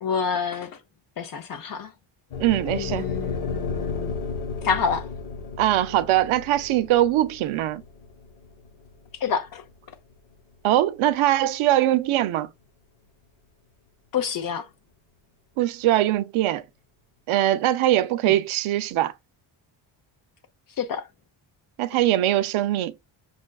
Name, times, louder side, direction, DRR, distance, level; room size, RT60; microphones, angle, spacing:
voice 1, 0.0-0.8 1.2-1.9 2.7-4.1 4.6-5.1 9.2-9.6 14.1-14.7 18.3-18.4 20.8-21.1, left 6 dB, 45° left, 0.6 m, -28 dB
sound 1, 2.3-10.5, left 4 dB, 75° left, 1.2 m, -34 dB
voice 2, 2.4-3.0 5.6-7.8 10.6-12.5 15.6-16.6 17.3-19.1 21.8-22.9, right 14 dB, 85° right, 0.6 m, -22 dB
5.4 x 2.4 x 2.3 m
cardioid pair, 160°, 48 cm